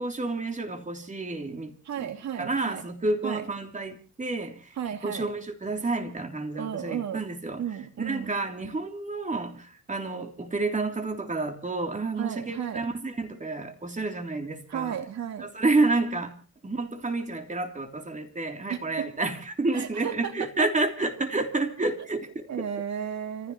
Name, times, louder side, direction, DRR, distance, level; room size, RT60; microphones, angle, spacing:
voice 1, 0.0-2.1 2.4-4.7 5.0-7.6 8.0-15.0 15.4-16.4 16.6-22.7, right 3 dB, 25° right, 3.3 m, -30 dB
voice 2, 1.8-2.8 3.2-3.4 4.8-5.3 6.6-7.2 7.6-8.3 12.2-12.9 14.7-15.5 18.7-19.1 19.7-20.5 22.5-23.5, right 9 dB, 65° right, 2.8 m, -33 dB
29.5 x 15.5 x 3.1 m
cardioid pair, 90°, 30 cm